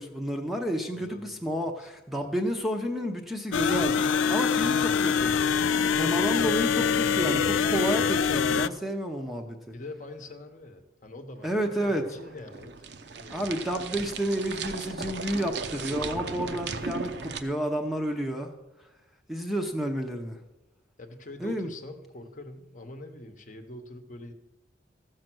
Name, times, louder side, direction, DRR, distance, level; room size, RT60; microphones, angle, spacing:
voice 1, 0.0-4.0 4.3-5.3 5.9-9.6 11.4-12.1 13.3-18.5 19.3-20.4 21.4-21.7, equal, ahead, 3 dB, 0.7 m, -30 dB
voice 2, 0.9-1.9 2.2-2.4 9.7-12.7 13.1-13.6 21.0-24.3, left 1 dB, 40° left, 6 dB, 0.9 m, -44 dB
sound 1, 3.5-8.7, left 6 dB, 85° left, 0.4 m, -24 dB
sound 2, 11.4-17.4, right 4 dB, 60° right, 0.7 m, -37 dB
14.5 x 6.5 x 6.1 m, 1.0 s
head